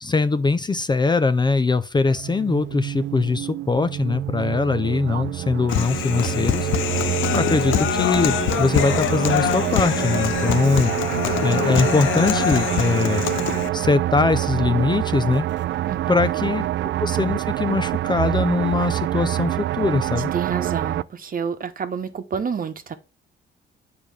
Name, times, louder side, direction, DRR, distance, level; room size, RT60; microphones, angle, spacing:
voice 1, 0.0-6.7 7.3-10.9 11.4-13.2 13.7-15.4 16.1-16.7 17.0-20.3, left 4 dB, 20° left, 0.5 m, -22 dB
sound 1, 2.1-21.0, right 13 dB, 65° right, 0.4 m, -26 dB
Human voice, 5.7-13.7, left 12 dB, 80° left, 0.6 m, -24 dB
voice 2, 20.3-23.0, right 6 dB, 45° right, 1.1 m, -28 dB
8.3 x 5.0 x 3.5 m
cardioid pair, 90°, 20 cm